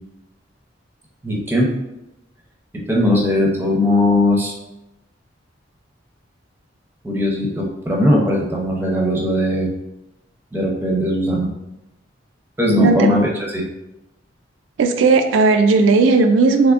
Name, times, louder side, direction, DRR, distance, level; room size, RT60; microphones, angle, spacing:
voice 1, 1.2-1.7 2.9-4.5 7.0-9.7 10.5-11.5 12.6-13.6, left 1 dB, 10° right, -2 dB, 0.6 m, -18 dB
voice 2, 14.8-16.7, right 4 dB, 90° right, 6 dB, 0.3 m, -15 dB
3.5 x 3.3 x 2.4 m, 0.93 s
head